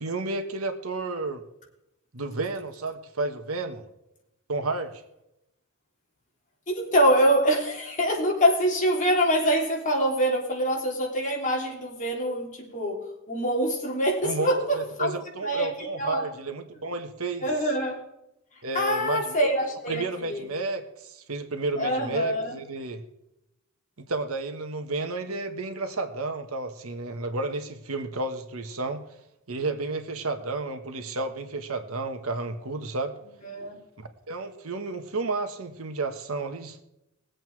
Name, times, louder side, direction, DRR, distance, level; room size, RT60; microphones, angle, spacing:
voice 1, 0.0-1.4 2.1-3.8 4.5-5.0 14.2-17.5 18.6-19.5 19.9-23.0 24.0-29.0 29.5-33.2 34.0-36.8, right 3 dB, 75° right, 7 dB, 1.4 m, -32 dB
voice 2, 6.7-15.1 15.4-16.2 17.4-18.0 18.7-20.5 21.8-22.6 33.4-33.8, equal, 35° left, -1 dB, 3.4 m, -25 dB
20.5 x 8.1 x 4.7 m, 0.86 s
head